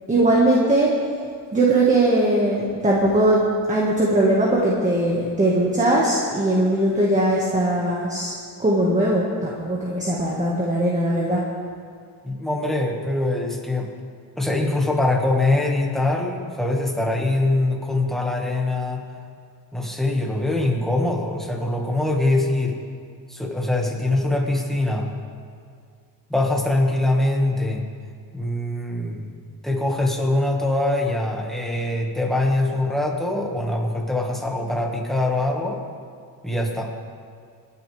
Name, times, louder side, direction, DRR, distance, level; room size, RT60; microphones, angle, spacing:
voice 1, 0.1-0.9 1.5-3.4 3.7-8.3 8.6-11.4, right 1 dB, 20° right, -4 dB, 1.8 m, -20 dB
voice 2, 12.2-13.9 14.4-19.0 19.7-22.7 23.3-25.1 26.3-27.9 28.3-29.3 29.6-35.8 36.4-37.1, left 2 dB, ahead, -1 dB, 1.8 m, -23 dB
27.0 x 9.8 x 3.5 m, 2.2 s
wide cardioid pair, 140°, 40 cm